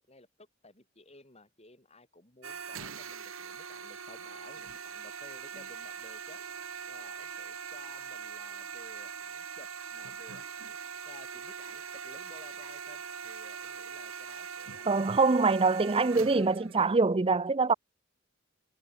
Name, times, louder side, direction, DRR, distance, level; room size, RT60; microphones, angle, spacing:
voice 1, 0.0-6.4 6.9-10.8 11.1-16.5, left 2 dB, 30° left, 5.4 m, -55 dB
sound 1, 2.4-16.9, right 6 dB, 80° right, 2.7 m, -42 dB
voice 2, 14.9-17.7, right 4 dB, 25° right, 0.5 m, -24 dB
head